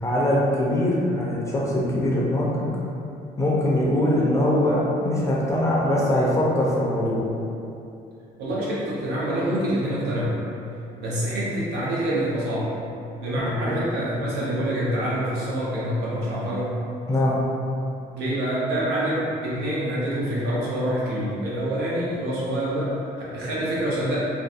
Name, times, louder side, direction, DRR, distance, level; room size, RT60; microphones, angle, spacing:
voice 1, 0.0-2.7 3.4-7.3 13.4-13.8 17.1-17.4, left 1 dB, 15° left, -5 dB, 0.5 m, -22 dB
voice 2, 8.4-10.4 11.0-12.7 13.2-16.8 18.1-24.2, right 1 dB, 85° right, -7 dB, 0.8 m, -26 dB
2.5 x 2.3 x 2.4 m, 2.6 s
cardioid pair, 110°, 17 cm